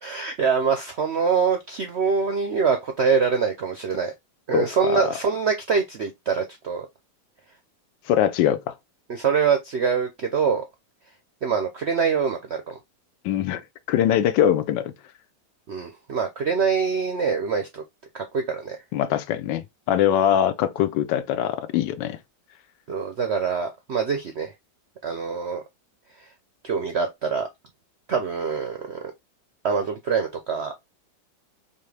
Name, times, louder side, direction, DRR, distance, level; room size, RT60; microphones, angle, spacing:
voice 1, 0.0-4.1 4.5-6.9 9.1-10.6 11.4-12.8 15.7-17.8 18.1-18.8 22.9-24.5 25.0-25.6 26.6-27.5 28.1-29.1 29.6-30.7, right 5 dB, 70° right, 0.6 m, -24 dB
voice 2, 4.5-5.1 8.1-8.7 13.2-13.6 13.9-14.9 18.9-22.2, left 10 dB, 85° left, 1.3 m, -22 dB
4.4 x 2.9 x 3.2 m
omnidirectional pair, 1.9 m